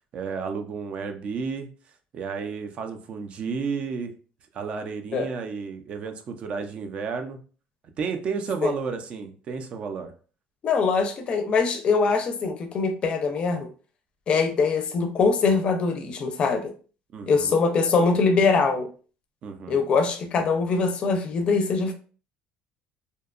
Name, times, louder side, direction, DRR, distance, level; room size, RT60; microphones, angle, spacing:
voice 1, 0.1-1.7 2.1-4.1 4.5-7.4 8.0-10.1 17.1-17.5 19.4-19.8, right 5 dB, 40° right, 6 dB, 0.4 m, -32 dB
voice 2, 10.6-13.7 14.3-16.7 17.3-18.9 19.7-21.9, left 4 dB, 35° left, 6 dB, 0.5 m, -23 dB
2.7 x 2.2 x 2.4 m, 0.39 s
cardioid pair, 145°, 3 cm